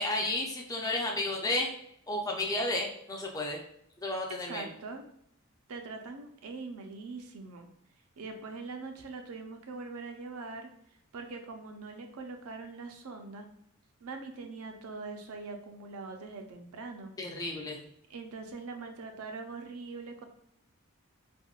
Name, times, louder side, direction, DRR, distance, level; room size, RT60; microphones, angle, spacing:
voice 1, 0.0-1.7 2.1-3.6 4.0-4.7 17.2-17.8, left 2 dB, 15° left, 1 dB, 0.3 m, -32 dB
voice 2, 4.4-5.1 5.7-7.7 8.2-10.7 11.1-13.5 14.0-17.1 18.1-20.2, right 3 dB, 75° right, 4 dB, 0.4 m, -42 dB
3.5 x 2.1 x 2.3 m, 0.73 s
head